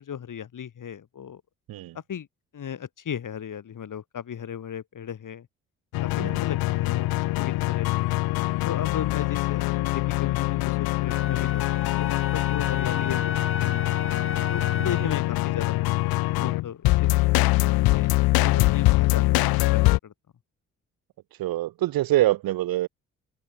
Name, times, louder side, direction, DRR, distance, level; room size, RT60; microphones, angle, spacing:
voice 1, 0.0-1.4 2.1-2.3 2.5-5.5 6.0-7.1 7.4-8.1 8.6-13.9 14.5-17.3 17.9-20.1, left 8 dB, 55° left, 5.9 m, -36 dB
sound 1, 5.9-20.0, left 20 dB, 75° left, 0.8 m, -23 dB
Wind instrument woodwind instrument, 11.1-15.2, left 5 dB, 35° left, 3.9 m, -35 dB
voice 2, 14.8-15.1 21.4-22.9, right 15 dB, 70° right, 1.5 m, -25 dB
open air
hypercardioid pair, 50°, 36 cm